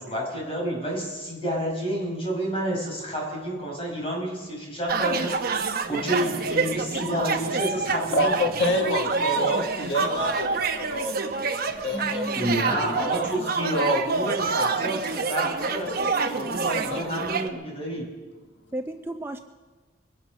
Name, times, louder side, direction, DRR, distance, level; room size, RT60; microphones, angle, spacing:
voice 1, 0.0-5.3 5.9-8.4 12.3-18.1, equal, 30° left, -2 dB, 5.3 m, -29 dB
sound 1, 4.9-17.5, right 4 dB, 50° right, 1.0 m, -27 dB
voice 2, 6.7-7.1 8.1-12.4 16.8-17.0, left 1 dB, 65° left, 2 dB, 1.6 m, -28 dB
voice 3, 11.9-13.7 18.7-19.4, right 1 dB, 10° right, 6 dB, 0.4 m, -35 dB
22.0 x 10.0 x 6.4 m, 1.4 s
head